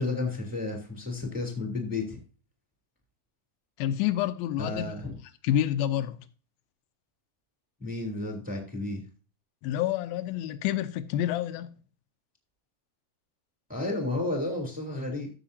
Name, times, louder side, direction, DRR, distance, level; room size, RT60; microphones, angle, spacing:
voice 1, 0.0-2.2 4.6-5.1 7.8-9.0 13.7-15.3, left 2 dB, 5° right, 2.5 m, -32 dB
voice 2, 3.8-5.0 5.4-6.2 9.6-11.8, left 11 dB, 85° left, 2.5 m, -28 dB
14.0 x 6.7 x 2.7 m
omnidirectional pair, 4.1 m